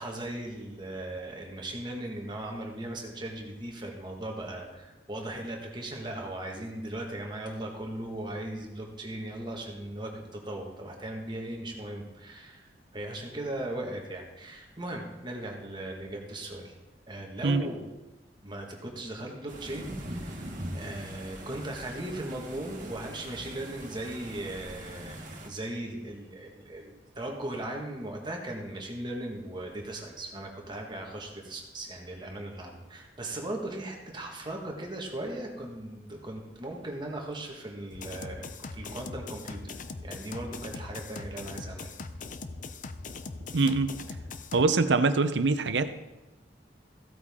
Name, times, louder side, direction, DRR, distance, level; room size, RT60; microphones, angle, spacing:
voice 1, 0.0-16.7 17.1-17.9 18.4-41.9, right 1 dB, 25° right, 1 dB, 1.7 m, -38 dB
sound 1, 19.5-25.5, right 1 dB, 45° right, 1.7 m, -42 dB
sound 2, 37.9-44.6, left 3 dB, 50° left, 0.6 m, -41 dB
voice 2, 43.5-44.0 44.5-46.0, right 3 dB, 90° right, 11 dB, 0.7 m, -24 dB
15.5 x 8.5 x 3.7 m, 1.0 s
head